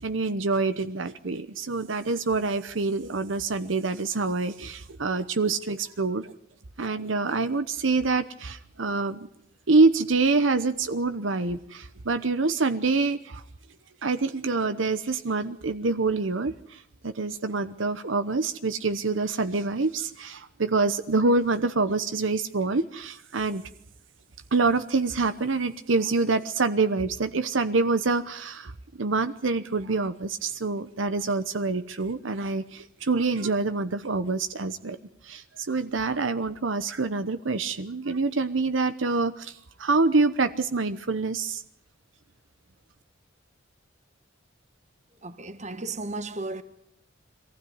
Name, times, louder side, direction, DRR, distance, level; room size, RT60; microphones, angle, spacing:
voice 1, 0.0-6.3 6.8-9.3 9.7-13.4 14.0-23.6 24.5-28.7 29.0-35.0 35.2-41.6, right 3 dB, 70° right, 0.9 m, -26 dB
voice 2, 45.2-46.6, right 2 dB, 35° right, 1.4 m, -34 dB
23.5 x 15.5 x 9.4 m
head